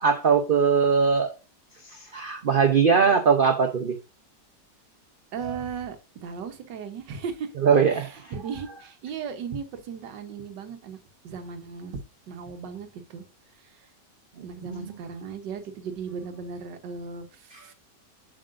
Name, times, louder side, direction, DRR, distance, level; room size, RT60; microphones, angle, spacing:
voice 1, 0.0-1.3 2.0-3.9 5.5-5.6 7.6-8.3 14.4-14.9, right 6 dB, 70° right, 0.5 m, -21 dB
voice 2, 5.3-7.5 7.9-11.0 11.2-12.0 12.3-13.2 13.7-13.9 14.4-17.7, right 6 dB, 85° right, 1.6 m, -36 dB
7.5 x 6.4 x 2.5 m
omnidirectional pair, 1.9 m